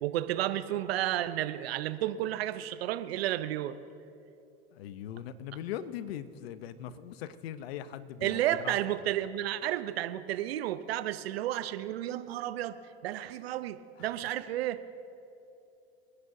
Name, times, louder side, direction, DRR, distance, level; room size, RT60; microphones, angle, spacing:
voice 1, 0.0-3.8 8.2-12.8 13.0-14.8, right 13 dB, 80° right, 13 dB, 0.7 m, -32 dB
voice 2, 4.7-8.8, left 10 dB, 75° left, 14 dB, 0.8 m, -40 dB
29.0 x 9.9 x 2.7 m, 2.7 s
hypercardioid pair, 90°, 30 cm